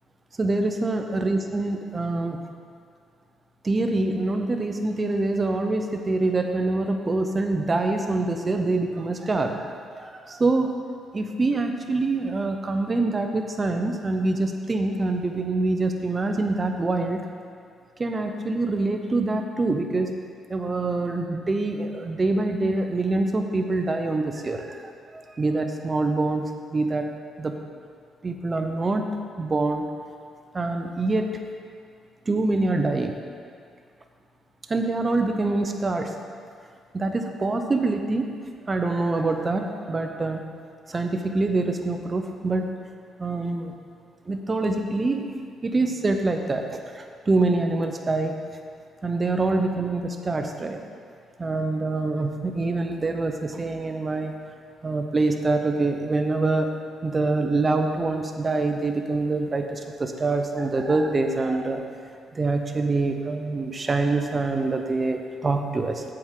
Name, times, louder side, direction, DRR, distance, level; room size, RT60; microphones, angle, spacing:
voice 1, 0.4-2.4 3.6-10.7 11.1-17.2 18.0-20.1 20.5-26.4 26.7-27.1 27.4-27.5 28.2-29.1 29.4-29.8 30.5-31.4 32.3-33.1 34.7-36.1 36.9-38.3 38.7-40.4 40.9-42.7 43.2-43.7 44.3-45.2 45.6-48.4 49.0-50.8 51.4-54.3 54.8-56.7 57.0-61.9 62.3-66.0, right 2 dB, 30° right, 5 dB, 0.8 m, -25 dB
8.0 x 7.6 x 3.8 m, 2.2 s
cardioid pair, 90°, 0 cm